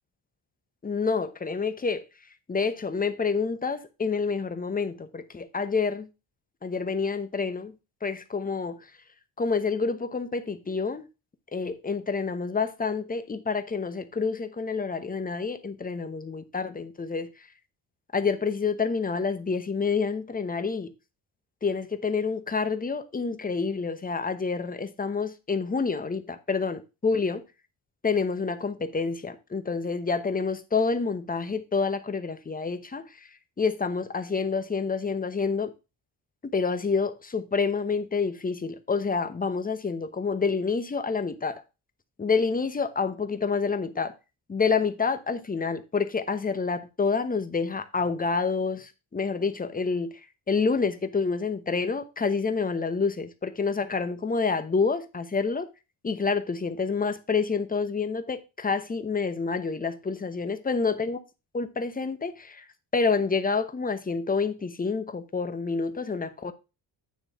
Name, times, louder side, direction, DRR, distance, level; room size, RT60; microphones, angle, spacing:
voice 1, 0.8-2.0 2.5-6.1 6.6-7.7 8.0-8.9 9.4-11.0 11.5-17.3 18.1-20.9 21.6-27.4 28.0-33.3 33.6-35.7 36.4-41.6 42.2-44.1 44.5-50.2 50.5-55.7 56.0-61.2 61.5-62.7 62.9-66.5, left 4 dB, 20° left, 0.8 m, -28 dB
9.4 x 3.2 x 5.5 m
cardioid pair, 95°, 44 cm